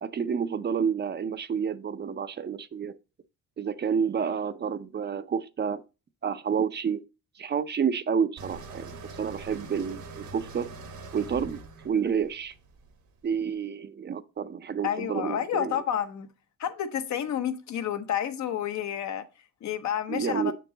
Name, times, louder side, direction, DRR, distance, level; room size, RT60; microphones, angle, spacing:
voice 1, 0.0-2.9 3.6-5.8 6.2-7.0 7.4-8.9 9.2-10.7 11.1-11.6 11.8-12.5 13.2-15.8 20.1-20.5, right 7 dB, 35° right, 0.5 m, -29 dB
sound 1, 8.4-13.3, right 3 dB, 75° right, 1.3 m, -43 dB
voice 2, 14.8-16.3 16.6-19.2 19.6-20.5, left 9 dB, 65° left, 0.9 m, -30 dB
6.9 x 4.6 x 3.8 m
cardioid pair, 90°, 30 cm